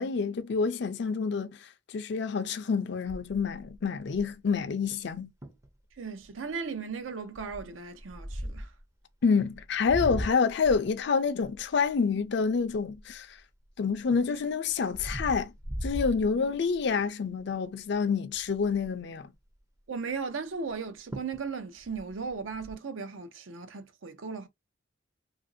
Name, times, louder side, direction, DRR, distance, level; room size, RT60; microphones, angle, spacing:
voice 1, 0.0-5.3 9.2-13.4 13.8-15.5 15.8-19.3, left 5 dB, 60° left, 0.4 m, -28 dB
sound 1, 3.1-4.5 5.1-5.2 5.4-5.7 6.2-6.5 7.3-8.8 9.5-13.4 13.9-16.9 17.4-17.6 17.9-18.0 18.3-19.0 20.7-20.8 21.1-21.5 21.8-22.7, equal, 15° right, 0.5 m, -39 dB
voice 2, 6.0-8.7 19.9-24.5, right 5 dB, 80° right, 0.6 m, -37 dB
2.9 x 2.5 x 2.5 m
head